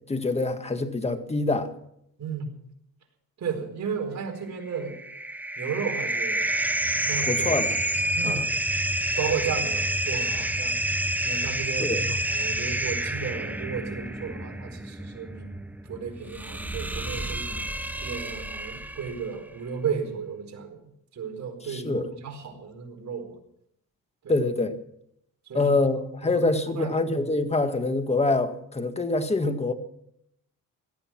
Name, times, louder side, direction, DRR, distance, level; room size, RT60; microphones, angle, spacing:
voice 1, 0.1-1.7 7.3-7.8 8.2-8.4 11.8-12.0 21.7-22.1 24.3-24.7 25.5-29.7, left 2 dB, 20° left, 1.8 m, -25 dB
voice 2, 2.2-2.5 3.4-4.9 5.6-6.5 7.1-7.3 8.1-8.4 9.2-10.8 11.2-15.5 15.8-17.6 18.0-20.8 21.1-23.4 24.2-24.3 25.5-25.7 26.2-26.9, right 6 dB, 50° right, 4.5 m, -34 dB
sound 1, 4.7-19.3, right 1 dB, 5° right, 0.8 m, -29 dB
18.0 x 13.0 x 6.0 m
cardioid pair, 105°, 35 cm